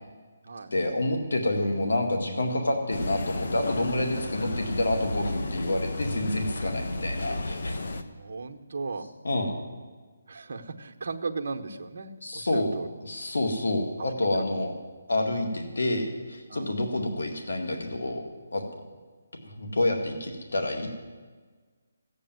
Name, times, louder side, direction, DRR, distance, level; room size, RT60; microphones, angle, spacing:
voice 1, 0.7-7.8 9.2-9.5 12.2-12.8 13.0-14.7 15.1-18.3 18.5-18.6 19.5-20.9, left 1 dB, 85° left, 3 dB, 2.0 m, -28 dB
sound 1, 2.9-8.0, left 2 dB, 60° left, 1.0 m, -33 dB
voice 2, 8.2-9.1 10.3-12.9 14.0-14.1 15.1-15.3 16.5-16.7, right 4 dB, 50° right, 3 dB, 1.1 m, -36 dB
14.5 x 8.5 x 9.3 m, 1.4 s
hypercardioid pair, 170°, 0 cm